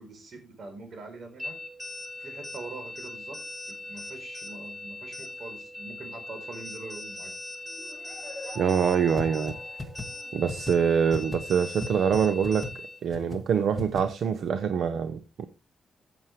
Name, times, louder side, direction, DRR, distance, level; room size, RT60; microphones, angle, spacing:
voice 1, 0.0-1.6 2.2-3.4 3.7-7.3, right 3 dB, 60° right, 6 dB, 4.0 m, -43 dB
sound 1, 1.4-13.0, left 2 dB, 5° right, 7.2 m, -40 dB
sound 2, 7.7-10.6, left 2 dB, 45° left, 5.4 m, -44 dB
voice 2, 8.5-9.6 10.3-12.7 13.0-15.5, right 7 dB, 80° right, 10 dB, 0.9 m, -25 dB
sound 3, 9.2-9.3 9.5-9.6 9.8-10.0 10.5-10.7 11.1-11.4 11.8-11.9 12.1-12.2 12.4-12.7 13.1-13.4 13.8-14.0, left 3 dB, 15° left, 2.3 m, -34 dB
15.0 x 7.4 x 3.2 m, 0.27 s
cardioid pair, 100°, 0 cm